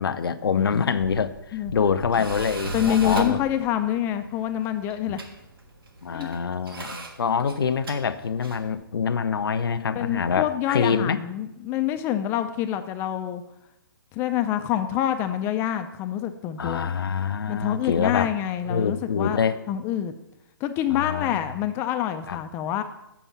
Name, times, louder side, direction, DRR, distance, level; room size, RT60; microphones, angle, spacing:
voice 1, 0.0-3.4 5.1-5.2 6.0-11.2 16.6-18.3 18.6-19.6 20.9-21.4 22.3-22.4, left 6 dB, 80° left, 9 dB, 0.6 m, -25 dB
Tools, 1.0-8.7, right 2 dB, 80° right, 1.5 m, -37 dB
voice 2, 2.7-5.2 6.1-6.3 10.0-13.4 14.1-16.9 17.5-19.4 19.7-20.1 20.6-22.8, left 11 dB, 20° left, 8 dB, 0.4 m, -26 dB
7.0 x 5.5 x 7.2 m, 0.90 s
hypercardioid pair, 145°, 12 cm